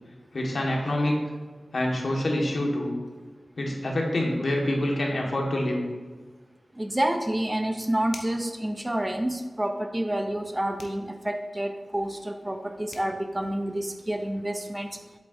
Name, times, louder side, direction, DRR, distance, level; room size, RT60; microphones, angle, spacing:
voice 1, 0.3-1.1 1.7-2.9 3.6-5.8, left 1 dB, 60° left, -1 dB, 1.5 m, -26 dB
voice 2, 6.8-15.0, right 1 dB, 15° right, 6 dB, 0.5 m, -29 dB
sound 1, 8.1-8.5 10.8-11.1 12.6-12.7 12.9-13.1, left 3 dB, 85° left, 0.9 m, -43 dB
8.1 x 8.0 x 2.6 m, 1.3 s
wide cardioid pair, 100°, 0 cm